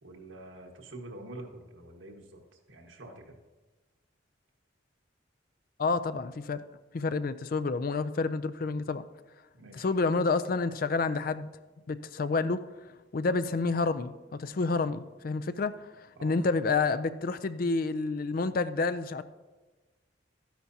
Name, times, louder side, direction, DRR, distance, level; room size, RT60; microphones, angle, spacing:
voice 1, 0.0-3.4 9.5-9.9 16.2-16.4, right 2 dB, 80° right, 2 dB, 1.5 m, -46 dB
voice 2, 5.8-6.6 6.9-9.0 9.7-11.5 11.9-12.6 13.1-14.1 14.4-19.2, left 4 dB, 45° left, 13 dB, 0.4 m, -29 dB
13.0 x 10.5 x 2.8 m, 1.2 s
head